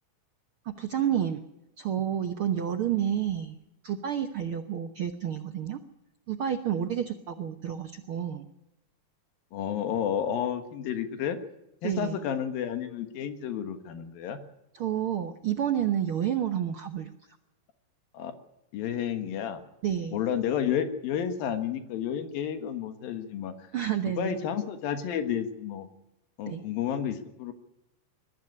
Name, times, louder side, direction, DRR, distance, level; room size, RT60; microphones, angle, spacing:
voice 1, 0.6-1.4 1.8-3.6 3.8-5.8 6.3-8.5 11.8-12.2 14.7-17.1 19.8-20.2 23.7-24.4 26.5-26.6, right 9 dB, 80° right, 7 dB, 1.2 m, -30 dB
voice 2, 9.5-11.4 11.8-14.4 18.1-18.3 18.7-19.6 20.1-23.7 24.2-25.9 26.4-27.5, left 9 dB, 90° left, 9 dB, 3.2 m, -31 dB
22.0 x 13.5 x 9.6 m, 0.91 s
omnidirectional pair, 4.0 m